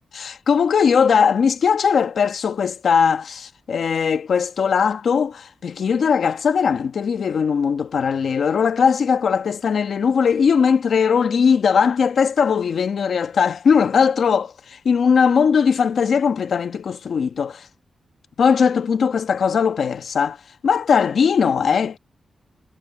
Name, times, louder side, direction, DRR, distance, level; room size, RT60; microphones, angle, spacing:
voice 1, 0.1-17.7 18.4-20.4 20.6-22.0, left 6 dB, 65° left, 1.3 m, -19 dB
wide cardioid pair, 150°, 0 cm